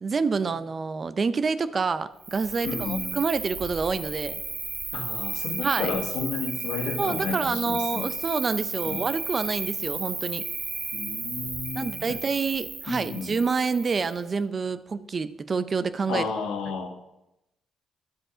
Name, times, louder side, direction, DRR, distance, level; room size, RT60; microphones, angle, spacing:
voice 1, 0.0-4.4 5.6-5.9 7.0-10.4 11.7-16.2, right 4 dB, 40° right, 14 dB, 0.6 m, -27 dB
Cricket, 2.2-14.2, right 4 dB, 55° right, 2.4 m, -34 dB
voice 2, 2.6-3.1 4.9-8.1 8.8-9.1 10.9-12.2 12.9-13.3 16.1-16.9, left 5 dB, 90° left, 4 dB, 1.6 m, -32 dB
11.5 x 7.6 x 5.0 m, 0.90 s
cardioid pair, 90°, 0 cm